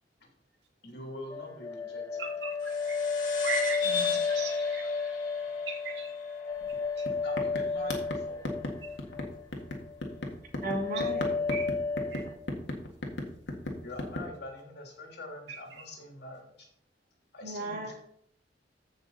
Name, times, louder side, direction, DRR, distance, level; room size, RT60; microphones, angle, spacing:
voice 1, 0.8-2.3 7.0-8.5 13.8-16.7 17.3-18.0, left 1 dB, 65° left, 0 dB, 3.4 m, -44 dB
sound 1, 1.3-9.4 9.7-10.3 10.6-12.4, left 4 dB, 20° left, 0.8 m, -32 dB
voice 2, 2.2-3.0 3.4-3.8 4.3-4.9 5.7-6.1 8.8-8.9 11.5-11.6 12.1-12.2, right 4 dB, 85° right, 1 dB, 2.4 m, -37 dB
sound 2, 2.6-7.5, left 5 dB, 45° left, 2.5 m, -39 dB
voice 3, 3.8-4.2 10.6-11.4 17.4-18.0, right 2 dB, 55° right, 0 dB, 2.7 m, -36 dB
sound 3, 6.6-6.8 7.0-14.3, left 1 dB, 85° left, 1.9 m, -36 dB
14.5 x 6.1 x 4.1 m, 0.69 s
head